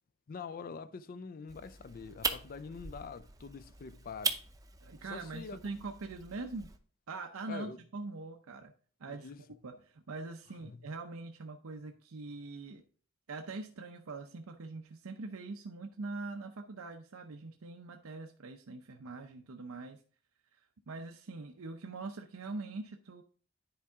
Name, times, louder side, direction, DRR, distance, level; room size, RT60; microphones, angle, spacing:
voice 1, 0.3-4.4 5.1-5.6 7.5-7.8 9.1-9.4 10.6-10.8, left 5 dB, 40° left, 0.4 m, -45 dB
sound 1, 1.5-6.8, right 4 dB, 15° right, 0.6 m, -40 dB
voice 2, 4.8-6.7 7.1-8.7 9.0-9.3 9.6-12.8 13.3-20.0 20.5-20.6 20.9-23.2, right 3 dB, 85° right, 0.6 m, -43 dB
10.0 x 4.7 x 3.6 m
head